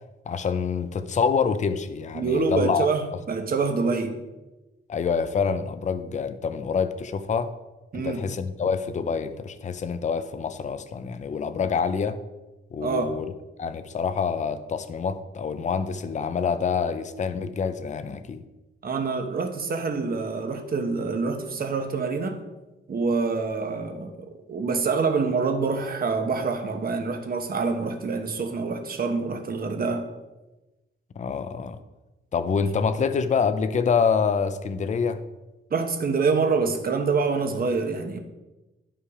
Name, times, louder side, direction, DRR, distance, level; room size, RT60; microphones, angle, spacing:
voice 1, 0.3-2.9 4.9-7.5 7.9-12.2 12.7-13.3 13.6-18.4 31.2-31.8 32.3-35.2, left 6 dB, 35° left, 10 dB, 0.5 m, -26 dB
voice 2, 2.1-4.1 7.9-8.2 12.8-13.1 18.8-22.4 22.9-30.1 35.7-38.2, right 4 dB, 45° right, 6 dB, 1.1 m, -26 dB
11.5 x 5.6 x 4.9 m, 1.1 s
wide cardioid pair, 155°, 21 cm